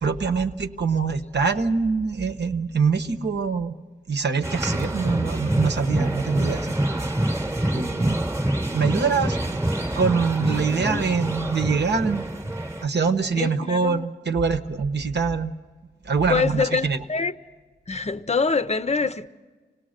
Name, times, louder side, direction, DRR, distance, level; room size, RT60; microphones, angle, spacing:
voice 1, 0.0-3.7 4.1-6.9 7.7-8.3 8.7-9.6 10.0-12.3 12.8-15.5 16.0-17.0, right 5 dB, 75° right, 1.0 m, -24 dB
sound 1, 4.4-12.8, right 1 dB, 15° right, 0.9 m, -26 dB
voice 2, 10.7-11.0 13.4-14.1 16.3-17.3 17.9-19.3, left 4 dB, 40° left, 0.6 m, -25 dB
26.0 x 17.5 x 6.5 m
wide cardioid pair, 100°, 18 cm